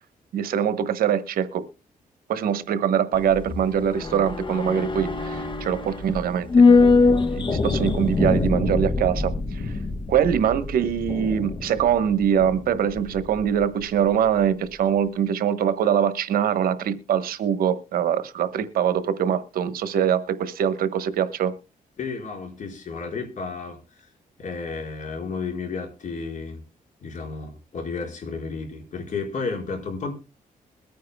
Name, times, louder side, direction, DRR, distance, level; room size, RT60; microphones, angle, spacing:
voice 1, 0.3-1.6 2.3-6.9 7.4-9.7 10.1-21.5, right 8 dB, 85° right, 1.1 m, -23 dB
sound 1, 3.1-13.6 13.9-14.0, left 4 dB, 35° left, 1.1 m, -23 dB
voice 2, 22.0-23.8 24.4-26.6 27.0-30.1, left 4 dB, 60° left, 4.6 m, -32 dB
22.0 x 9.4 x 2.2 m
cardioid pair, 125°, 15 cm